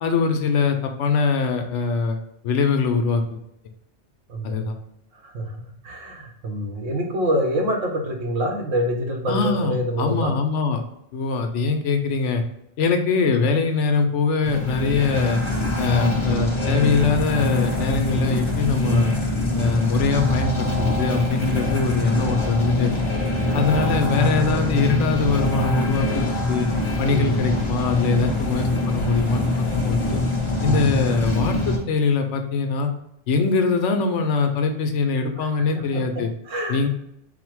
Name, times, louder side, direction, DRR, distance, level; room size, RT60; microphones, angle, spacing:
voice 1, 0.0-2.2 2.4-3.4 4.4-4.7 9.3-10.8 11.1-12.4 12.8-15.4 15.8-19.1 19.5-23.0 23.5-26.7 27.0-29.4 29.8-30.2 30.6-32.9 33.3-36.3 36.7-36.9, left 4 dB, 75° left, 5 dB, 0.9 m, -22 dB
voice 2, 4.3-4.6 5.2-5.6 5.8-10.3 23.5-23.9 27.1-27.5 30.6-30.9 35.4-35.5 35.7-36.0 36.4-36.8, equal, 80° right, 1 dB, 1.2 m, -26 dB
sound 1, 14.4-31.8, left 2 dB, 30° left, 0.7 m, -23 dB
4.2 x 2.1 x 4.5 m, 0.77 s
omnidirectional pair, 1.3 m